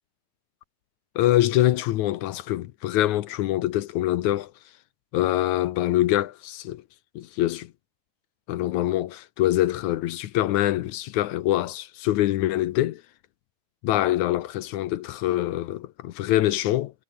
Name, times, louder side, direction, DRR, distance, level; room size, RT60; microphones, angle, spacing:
voice 1, 1.2-4.5 5.1-6.8 7.2-7.7 8.5-13.0 13.8-16.9, left 14 dB, 75° left, 1.9 m, -24 dB
omnidirectional pair, 4.0 m